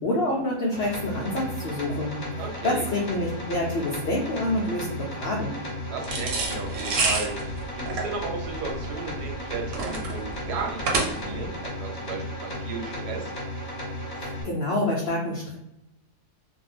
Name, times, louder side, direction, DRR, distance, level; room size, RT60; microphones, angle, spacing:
voice 1, 0.0-5.5 14.1-15.6, left 1 dB, 75° left, -2 dB, 0.5 m, -27 dB
sound 1, 0.7-14.4, left 1 dB, 40° left, 0.9 m, -35 dB
voice 2, 2.3-2.9 5.9-13.3, right 4 dB, 85° right, 2 dB, 1.2 m, -35 dB
sound 2, 6.0-11.5, right 3 dB, 65° right, 0.9 m, -28 dB
2.5 x 2.2 x 3.2 m, 0.88 s
omnidirectional pair, 1.7 m